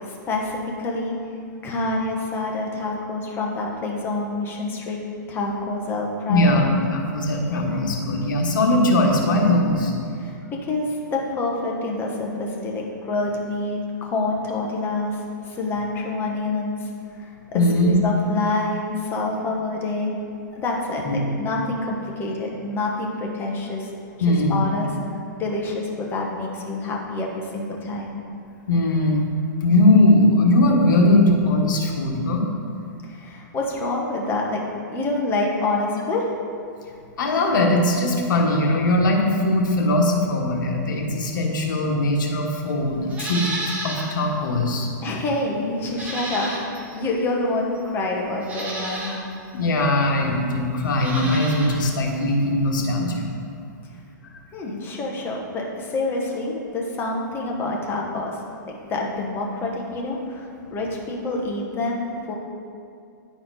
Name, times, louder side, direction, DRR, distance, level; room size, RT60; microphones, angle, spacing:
voice 1, 0.1-1.2 1.6-5.0 5.3-6.6 10.2-16.9 17.2-20.1 20.6-23.9 24.3-24.9 25.4-28.1 33.0-34.6 34.9-36.3 45.0-49.2 54.5-58.4 58.7-62.3, left 2 dB, 20° left, -1 dB, 1.1 m, -27 dB
voice 2, 6.3-6.7 6.9-9.9 17.5-17.9 21.0-21.3 24.2-24.6 28.7-29.3 29.6-32.4 37.2-43.5 43.8-44.9 49.5-53.3, left 1 dB, 80° left, 1 dB, 1.4 m, -20 dB
Livestock farm animals working animals, 43.1-44.2 44.6-44.7 45.9-46.9 47.8-47.9 48.4-49.2 50.9-51.8 52.1-52.2, right 1 dB, 15° right, 1.1 m, -31 dB
10.5 x 4.3 x 4.1 m, 2.4 s
hypercardioid pair, 150°, 10 cm